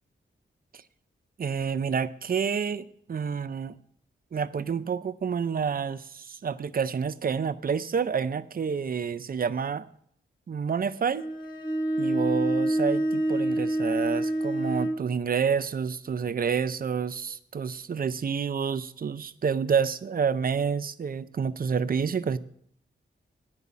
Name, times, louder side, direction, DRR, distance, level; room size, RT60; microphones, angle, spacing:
voice 1, 1.4-3.8 4.3-9.9 10.5-11.2 12.0-22.4, right 6 dB, 45° right, 0.5 m, -28 dB
Bowed string instrument, 11.1-15.1, right 1 dB, 20° left, 1.1 m, -27 dB
9.6 x 5.4 x 8.2 m
wide cardioid pair, 130°, 21 cm